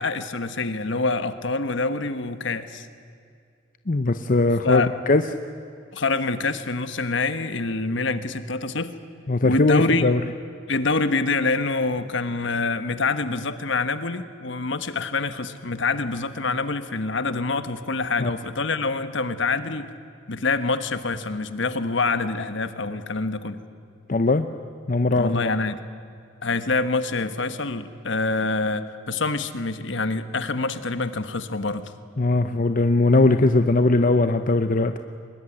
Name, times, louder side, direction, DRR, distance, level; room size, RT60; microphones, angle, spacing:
voice 1, 0.0-2.9 4.6-4.9 5.9-8.9 9.4-10.1 10.7-19.9 20.3-23.6 25.1-25.8 26.4-31.9, left 3 dB, 65° left, 11 dB, 1.3 m, -26 dB
voice 2, 3.9-5.2 9.3-10.2 18.2-18.3 24.1-24.5 24.9-25.5 32.2-35.0, left 2 dB, 45° left, 9 dB, 0.8 m, -20 dB
24.0 x 21.5 x 10.0 m, 2.3 s
head